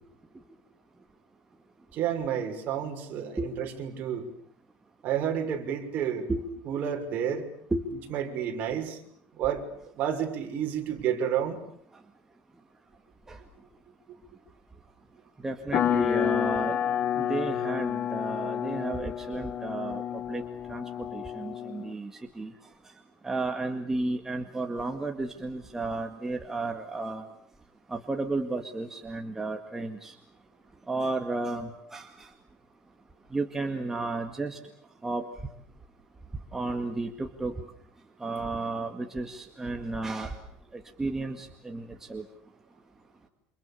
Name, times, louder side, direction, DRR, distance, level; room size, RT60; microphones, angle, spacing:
voice 1, 1.9-4.3 5.0-6.3 6.7-7.5 8.1-9.0 9.4-11.6, right 9 dB, 45° right, 3 dB, 6.1 m, -30 dB
voice 2, 15.4-16.8 17.2-20.4 20.7-22.5 23.2-27.2 27.9-30.1 30.9-32.3 33.3-34.6 35.0-35.2 36.5-37.5 38.2-40.3 40.7-42.2, right 2 dB, 10° right, 4 dB, 2.0 m, -33 dB
sound 1, 15.7-21.9, left 10 dB, 40° left, 1.1 m, -30 dB
29.5 x 27.5 x 7.1 m, 0.65 s
cardioid pair, 140°, 4 cm